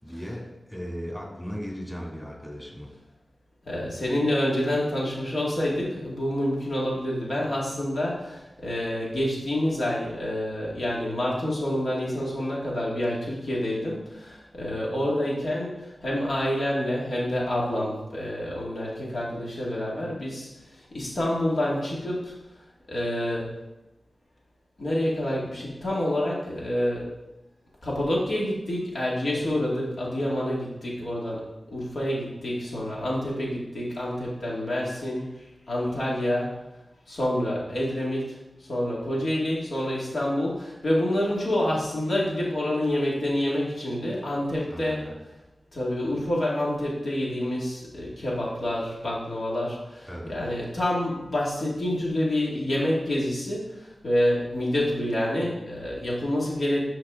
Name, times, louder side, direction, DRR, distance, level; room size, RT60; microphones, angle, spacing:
voice 1, 0.0-2.9 44.7-45.1 50.1-50.4, equal, 10° left, -3 dB, 2.8 m, -37 dB
voice 2, 3.7-20.5 20.9-22.3 22.9-23.5 24.8-27.1 27.8-36.6 37.1-45.1 45.7-56.8, left 1 dB, 80° left, -5 dB, 2.3 m, -28 dB
12.0 x 4.6 x 3.8 m, 0.98 s
cardioid pair, 50°, 0 cm